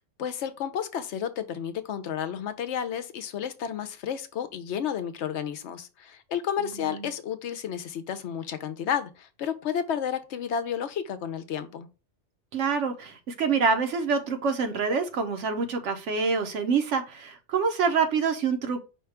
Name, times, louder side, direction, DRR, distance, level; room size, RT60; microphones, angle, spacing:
voice 1, 0.2-11.9, left 8 dB, 70° left, 0.9 m, -31 dB
voice 2, 6.6-7.1 12.5-18.8, right 5 dB, 80° right, 1.1 m, -26 dB
4.9 x 2.3 x 4.7 m
omnidirectional pair, 1.2 m